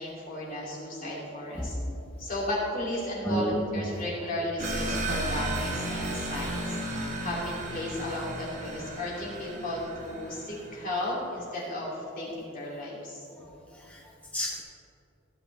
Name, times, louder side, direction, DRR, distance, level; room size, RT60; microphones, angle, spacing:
voice 1, 0.0-1.8 2.2-13.5, left 1 dB, 40° left, -5 dB, 2.8 m, -34 dB
voice 2, 1.5-2.0 3.2-4.0 13.4-14.6, equal, 5° left, -2 dB, 0.6 m, -32 dB
sound 1, 4.6-10.9, right 1 dB, 35° right, 1.4 m, -34 dB
16.0 x 8.8 x 3.4 m, 2.9 s
head